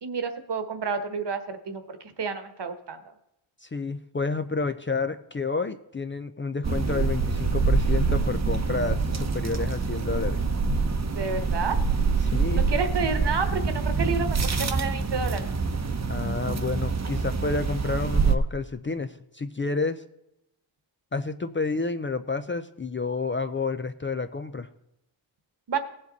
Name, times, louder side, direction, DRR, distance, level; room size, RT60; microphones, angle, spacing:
voice 1, 0.0-3.0 11.0-11.8 12.5-15.5 25.7-25.8, right 5 dB, 55° right, 8 dB, 1.3 m, -30 dB
voice 2, 3.6-10.5 12.2-12.7 16.1-20.0 21.1-24.7, left 4 dB, 25° left, 9 dB, 0.5 m, -30 dB
sound 1, 6.6-18.4, right 4 dB, 35° right, 0.9 m, -25 dB
17.5 x 7.6 x 4.0 m, 0.83 s
wide cardioid pair, 95°, 48 cm